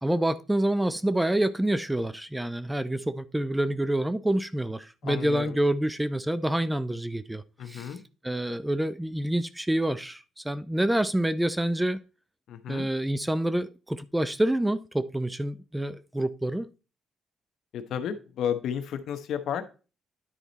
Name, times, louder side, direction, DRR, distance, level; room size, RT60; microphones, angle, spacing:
voice 1, 0.0-7.9 8.2-12.0 12.7-16.7, right 1 dB, 10° right, 0.5 m, -27 dB
voice 2, 5.0-5.6 7.6-8.0 12.5-12.9 17.7-19.6, left 8 dB, 75° left, 1.1 m, -32 dB
10.5 x 4.3 x 4.0 m
cardioid pair, 90°, 0 cm